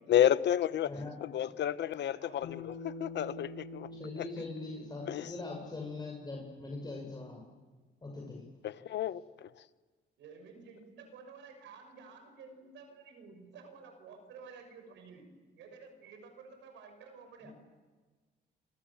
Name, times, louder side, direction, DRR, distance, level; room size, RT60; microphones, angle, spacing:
voice 1, 0.1-0.9 1.2-3.9 4.2-4.3 5.1-5.3 8.6-9.5, left 11 dB, 70° left, 13 dB, 1.2 m, -30 dB
voice 2, 0.8-1.2 3.9-7.4 8.0-8.4 17.4-17.5, left 3 dB, 20° left, 0 dB, 6.6 m, -41 dB
Bass guitar, 2.4-6.8, left 2 dB, 85° left, 5.2 m, -47 dB
voice 3, 10.2-15.3 15.5-17.5, right 5 dB, 85° right, 6 dB, 6.5 m, -52 dB
28.0 x 26.5 x 7.4 m, 1.4 s
cardioid pair, 95°, 19 cm